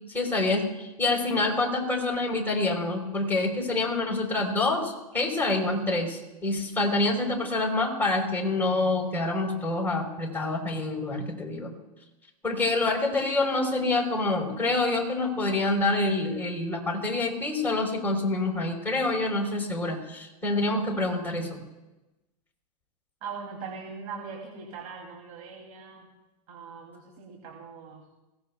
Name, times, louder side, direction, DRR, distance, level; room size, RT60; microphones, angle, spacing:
voice 1, 0.1-11.7 12.4-21.6, left 2 dB, 10° left, -1 dB, 3.8 m, -27 dB
voice 2, 23.2-26.1 26.5-28.1, right 5 dB, 60° right, 0 dB, 2.9 m, -41 dB
21.0 x 17.0 x 2.3 m, 1.0 s
hypercardioid pair, 115°, 20 cm